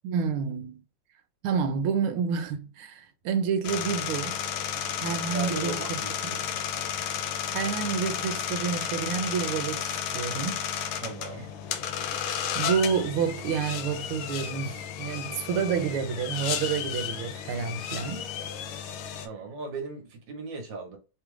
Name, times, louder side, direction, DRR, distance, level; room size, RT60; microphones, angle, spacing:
voice 1, 0.0-0.8 1.4-4.4 5.0-6.0 6.2-6.5 7.5-10.6 12.5-18.3 19.1-19.2, right 6 dB, 80° right, 1.5 m, -29 dB
sound 1, 3.6-19.3, left 9 dB, 80° left, 1.4 m, -33 dB
voice 2, 5.1-6.6 11.0-11.5 19.2-21.0, right 3 dB, 65° right, 1.6 m, -38 dB
3.6 x 2.4 x 3.1 m
omnidirectional pair, 2.4 m